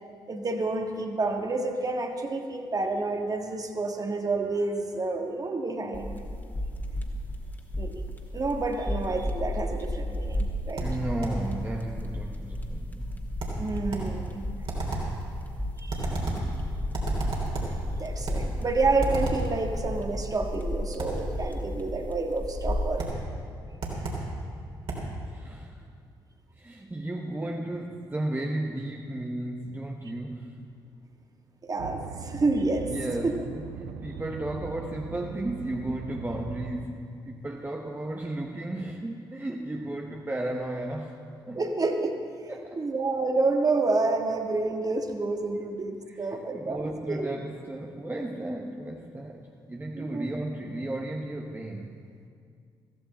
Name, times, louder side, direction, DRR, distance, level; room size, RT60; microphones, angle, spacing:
voice 1, 0.3-6.2 7.8-8.0 8.3-10.8 13.6-14.4 15.8-16.1 17.9-23.1 31.6-32.9 33.2-33.3 41.5-42.2 42.8-47.3 49.9-50.3, right 3 dB, 30° right, 4 dB, 1.6 m, -29 dB
sound 1, 5.9-23.1, left 1 dB, 15° left, 2.1 m, -33 dB
voice 2, 10.8-13.3 25.3-25.8 26.6-30.6 32.8-41.2 41.5-41.6 42.5-42.9 46.1-52.0, right 1 dB, 15° right, 2 dB, 1.1 m, -34 dB
sound 2, 10.8-11.5 13.4-14.2 14.7-15.2 15.9-16.5 16.9-17.8 18.3-18.5 19.0-19.5 21.0-21.3 23.0-23.3 23.8-24.3 24.9-25.1, right 2 dB, 55° right, 3.3 m, -33 dB
sound 3, 31.8-36.9, right 6 dB, 70° right, 0.6 m, -40 dB
15.5 x 14.5 x 4.3 m, 2.3 s
figure-of-eight pair, 45°, 11 cm